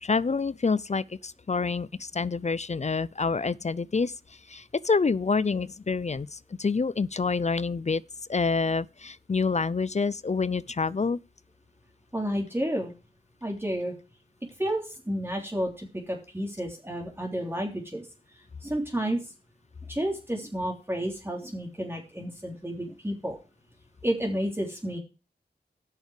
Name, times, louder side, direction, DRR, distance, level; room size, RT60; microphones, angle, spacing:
voice 1, 0.0-4.1 4.5-8.0 8.3-11.2, left 4 dB, 45° left, 0.5 m, -27 dB
voice 2, 12.1-12.9 13.4-13.9 14.6-18.1 18.6-19.2 19.9-23.4 24.0-25.0, equal, 15° right, 3.2 m, -31 dB
13.0 x 6.5 x 4.9 m
wide cardioid pair, 70°, 17 cm